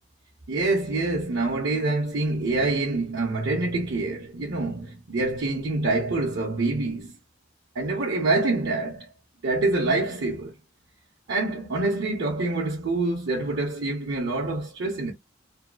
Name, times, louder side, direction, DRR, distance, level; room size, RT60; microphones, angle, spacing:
voice 1, 0.5-7.1 7.7-9.1 9.4-10.5 11.3-15.1, right 2 dB, 65° right, 0.7 m, -26 dB
2.7 x 2.3 x 2.4 m
head